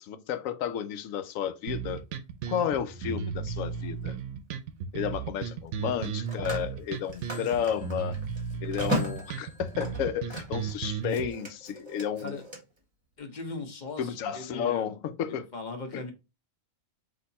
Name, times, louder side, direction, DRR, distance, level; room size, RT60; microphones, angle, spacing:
voice 1, 0.0-2.0 2.5-4.2 4.9-8.2 8.6-12.4 14.0-15.5 15.9-16.0, left 9 dB, 80° left, 1.0 m, -32 dB
sound 1, 1.7-11.3, right 7 dB, 70° right, 0.9 m, -35 dB
Telephone, 3.7-3.9 5.9-10.7 11.0-12.6, equal, 20° right, 1.2 m, -36 dB
voice 2, 13.2-15.0 15.3-16.1, left 3 dB, 40° left, 0.9 m, -39 dB
4.3 x 2.8 x 4.0 m
omnidirectional pair, 1.4 m